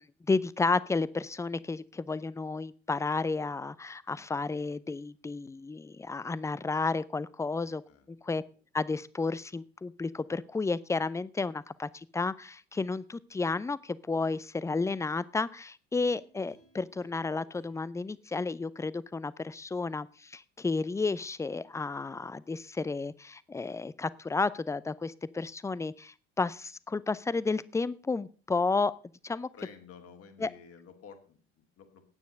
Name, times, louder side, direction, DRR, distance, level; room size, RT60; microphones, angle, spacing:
voice 1, 0.0-7.8 8.1-8.4 8.7-28.9 29.2-29.5 30.4-30.5, left 3 dB, 10° left, 19 dB, 0.5 m, -32 dB
sound 1, 16.0-19.3 19.7-19.8, equal, 75° left, 3.1 m, -62 dB
voice 2, 29.5-32.0, left 6 dB, 45° left, 6 dB, 2.3 m, -52 dB
9.8 x 9.2 x 6.5 m, 0.39 s
figure-of-eight pair, 55°, 33 cm